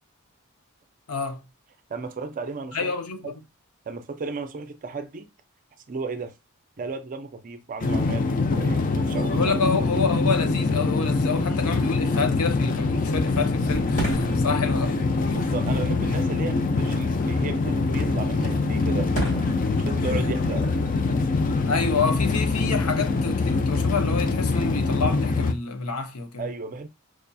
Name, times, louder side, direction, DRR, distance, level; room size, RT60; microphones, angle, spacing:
voice 1, 1.1-1.4 2.7-3.3 9.3-15.0 15.3-15.4 21.7-26.5, left 4 dB, 85° left, 0.6 m, -28 dB
voice 2, 1.9-2.9 3.2-3.3 3.9-5.3 5.9-6.3 6.8-9.5 15.3-20.7 26.4-26.9, right 4 dB, 35° right, 0.4 m, -34 dB
sound 1, 7.8-25.5, left 3 dB, 40° left, 0.4 m, -24 dB
Fireworks, 13.6-23.5, right 2 dB, 70° left, 1.9 m, -38 dB
4.8 x 2.7 x 2.2 m
head